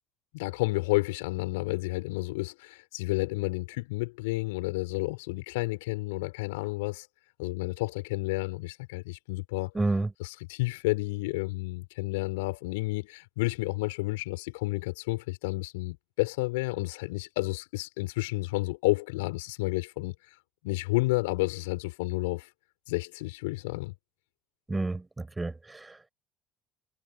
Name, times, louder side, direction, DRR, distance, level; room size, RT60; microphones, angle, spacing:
voice 1, 0.3-7.1 7.4-9.7 10.2-20.1 20.6-22.5 22.9-23.9, left 23 dB, 70° left, 5.3 m, -31 dB
voice 2, 9.7-10.1 24.7-26.1, right 2 dB, 15° right, 7.2 m, -30 dB
figure-of-eight pair, 55°, 0 cm